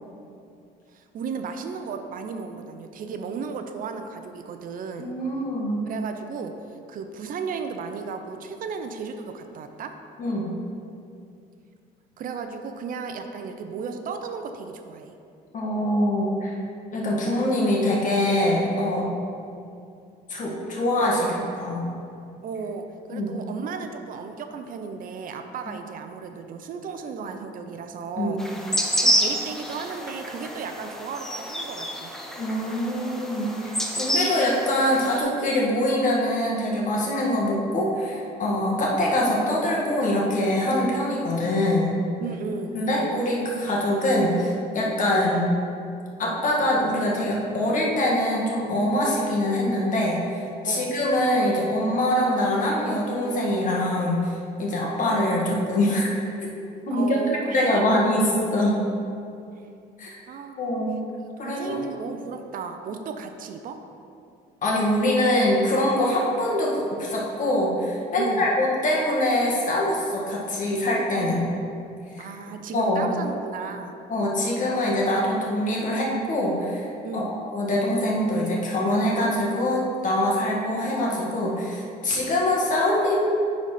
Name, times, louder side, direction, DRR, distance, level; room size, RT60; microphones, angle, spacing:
voice 1, 0.9-5.1 5.9-9.9 12.2-15.1 22.4-28.4 29.0-32.1 42.2-42.8 50.7-50.9 56.9-58.0 60.3-60.6 61.4-63.8 68.2-68.6 72.2-73.9 77.0-77.4, right 5 dB, 55° right, 6 dB, 0.6 m, -34 dB
voice 2, 5.0-5.8 10.2-10.5 15.5-16.6 16.9-19.1 20.3-21.9 23.1-23.3 28.2-28.4 32.4-33.7 34.0-42.0 42.7-45.5 46.2-56.2 56.9-57.2 57.5-58.3 58.5-58.8 60.0-60.2 60.6-61.0 61.4-61.8 64.6-71.5 72.1-72.3 72.7-73.1 74.1-76.9 77.1-83.2, left 1 dB, 50° left, -3 dB, 1.8 m, -24 dB
sound 1, 28.4-35.2, equal, 5° left, 0.8 m, -28 dB
9.1 x 4.2 x 5.0 m, 2.5 s
cardioid pair, 110°, 17 cm